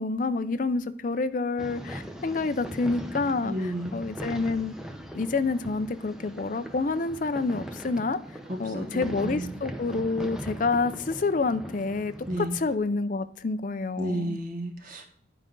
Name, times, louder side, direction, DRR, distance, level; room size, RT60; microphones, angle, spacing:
voice 1, 0.0-3.5 3.9-4.7 5.1-8.2 8.6-14.4, left 3 dB, 45° left, 13 dB, 0.5 m, -28 dB
sound 1, 1.6-12.8, equal, 5° right, 0.7 m, -40 dB
voice 2, 3.4-4.0 8.5-9.6 12.3-12.6 14.0-15.0, right 1 dB, 45° right, 4 dB, 1.4 m, -32 dB
11.5 x 5.1 x 3.8 m, 0.65 s
head